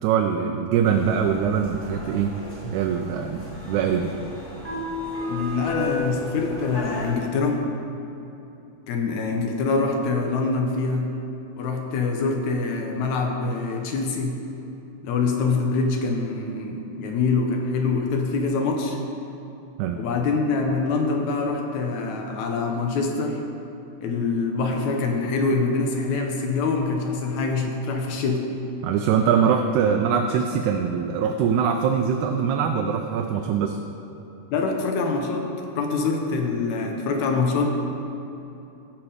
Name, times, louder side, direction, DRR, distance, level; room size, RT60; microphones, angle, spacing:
voice 1, 0.0-2.3 2.6-4.1 19.8-20.0 28.8-33.8, right 7 dB, 80° right, 4 dB, 1.9 m, -23 dB
sound 1, 0.9-7.1, left 2 dB, 10° left, 2.1 m, -34 dB
voice 2, 5.3-7.7 8.9-11.1 11.6-14.4 15.0-19.0 20.0-23.4 24.0-28.5 34.5-35.5 35.7-37.7, left 4 dB, 75° left, 2 dB, 2.1 m, -25 dB
15.0 x 5.9 x 4.9 m, 2.9 s
omnidirectional pair, 3.5 m